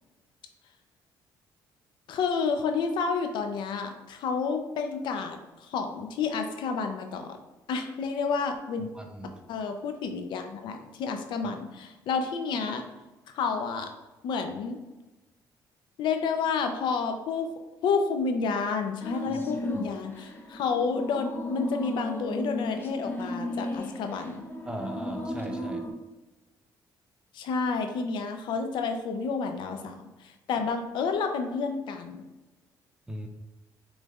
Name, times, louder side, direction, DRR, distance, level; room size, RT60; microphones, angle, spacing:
voice 1, 2.1-7.4 7.7-8.9 9.5-12.9 13.3-13.9 14.2-14.8 16.0-17.5 17.8-24.4 27.3-32.2, left 5 dB, 75° left, 6 dB, 0.5 m, -30 dB
voice 2, 8.9-9.3 19.3-19.4 24.6-25.9 33.1-33.3, right 1 dB, 10° right, 3 dB, 0.6 m, -38 dB
sound 1, 19.0-25.9, left 1 dB, 25° left, 0.7 m, -35 dB
6.3 x 3.2 x 2.4 m, 1.1 s
cardioid pair, 105°, 8 cm